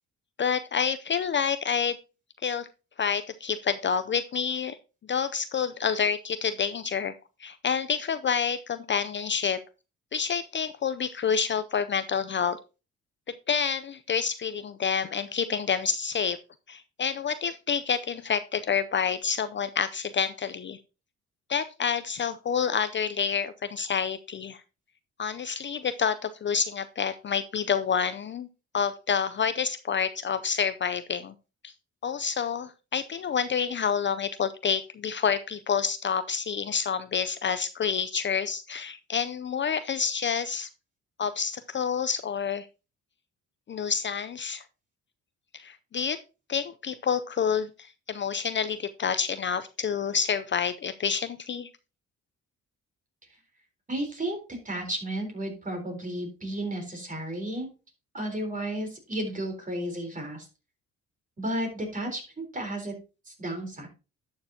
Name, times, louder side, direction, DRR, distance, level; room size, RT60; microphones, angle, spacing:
voice 1, 0.4-1.9 2.4-2.7 3.0-4.8 5.1-7.2 7.4-9.6 10.1-12.6 13.5-16.4 16.7-20.8 21.5-24.6 25.2-28.5 28.7-31.3 31.6-31.7 32.0-40.7 41.2-42.7 43.7-44.6 45.5-46.2 46.5-51.7, left 7 dB, 40° left, 12 dB, 0.5 m, -28 dB
voice 2, 53.9-54.4 54.6-57.7 58.1-60.5 61.4-62.2 62.5-62.9 63.3-63.9, right 1 dB, 25° right, 3 dB, 3.8 m, -33 dB
11.5 x 6.6 x 2.8 m, 0.31 s
cardioid pair, 90°, 30 cm